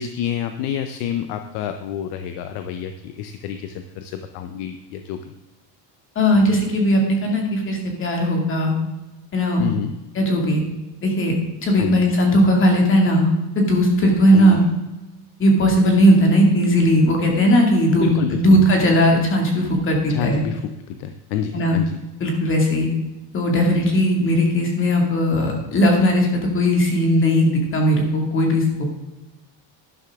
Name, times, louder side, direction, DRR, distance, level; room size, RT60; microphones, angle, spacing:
voice 1, 0.0-5.3 9.6-9.9 11.8-12.0 14.3-14.7 18.0-18.6 20.1-22.0, left 9 dB, 55° left, 8 dB, 0.8 m, -28 dB
voice 2, 6.2-8.7 9.3-9.6 10.2-10.6 11.0-11.3 11.6-13.3 13.6-14.6 15.4-20.4 21.5-21.8 22.2-22.9 23.3-28.6, equal, 25° left, 1 dB, 2.2 m, -17 dB
11.5 x 11.5 x 3.6 m, 1.0 s
cardioid pair, 175°, 48 cm